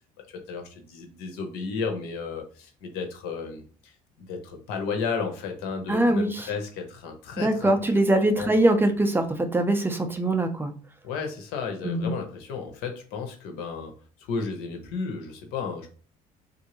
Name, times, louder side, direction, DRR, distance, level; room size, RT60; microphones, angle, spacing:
voice 1, 0.5-3.7 4.2-8.8 11.0-13.9 14.3-15.9, left 5 dB, 90° left, 4 dB, 0.8 m, -33 dB
voice 2, 5.9-6.5 7.4-9.2 9.5-10.7 11.8-12.1, right 1 dB, 15° right, 7 dB, 0.5 m, -22 dB
3.3 x 2.6 x 3.0 m, 0.40 s
cardioid pair, 105°, 16 cm